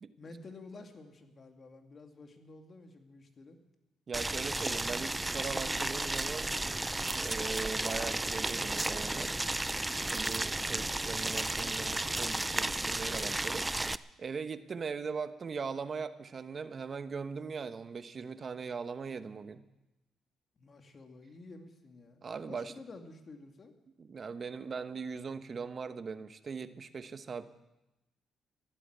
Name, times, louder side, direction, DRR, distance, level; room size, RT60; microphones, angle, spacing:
voice 1, 0.2-3.6 20.6-23.7, left 3 dB, 40° left, 4 dB, 2.4 m, -51 dB
Boiling, 4.1-14.0, right 2 dB, 15° right, 0.4 m, -33 dB
voice 2, 4.1-6.5 7.1-9.3 10.1-13.7 13.9-19.6 22.2-22.7 24.0-27.4, right 5 dB, 45° right, 11 dB, 1.0 m, -40 dB
15.0 x 12.0 x 7.9 m, 0.96 s
cardioid pair, 90°, 0 cm